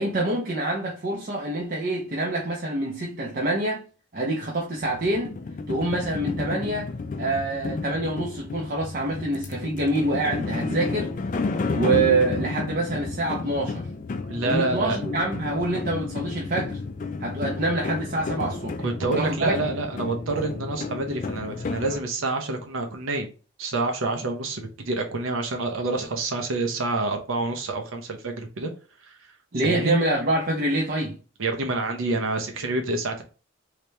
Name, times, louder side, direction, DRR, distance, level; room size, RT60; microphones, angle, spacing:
voice 1, 0.0-3.8 4.1-5.4 5.7-6.9 7.2-11.1 11.7-13.9 14.4-16.8 17.2-19.5 29.5-31.2, right 2 dB, 45° right, 0.6 m, -26 dB
sound 1, 4.8-22.0, left 3 dB, 40° left, 0.3 m, -31 dB
voice 2, 14.3-15.0 18.8-23.3 23.6-28.7 29.0-29.2 29.6-30.0 31.4-33.2, right 2 dB, 80° right, 0.7 m, -27 dB
3.3 x 2.9 x 3.2 m
head